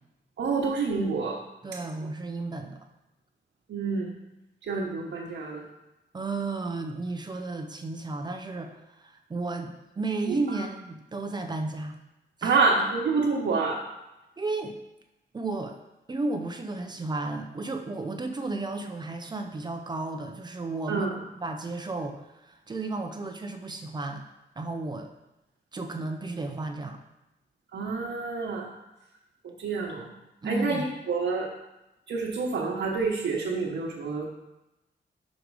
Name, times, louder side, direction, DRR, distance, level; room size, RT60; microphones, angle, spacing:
voice 1, 0.4-1.4 3.7-4.1 4.6-5.6 10.3-10.6 12.4-13.8 20.9-21.2 27.7-28.7 29.4-30.1 30.4-31.5 32.1-34.3, right 4 dB, 85° right, -5 dB, 1.1 m, -28 dB
voice 2, 1.6-2.8 6.1-12.0 12.4-12.6 14.4-14.8 15.3-15.8 16.1-21.1 21.4-24.2 24.6-25.1 25.7-27.0 30.4-30.8, right 3 dB, 25° right, 5 dB, 0.6 m, -33 dB
6.2 x 5.2 x 4.7 m, 0.95 s
wide cardioid pair, 180°, 19 cm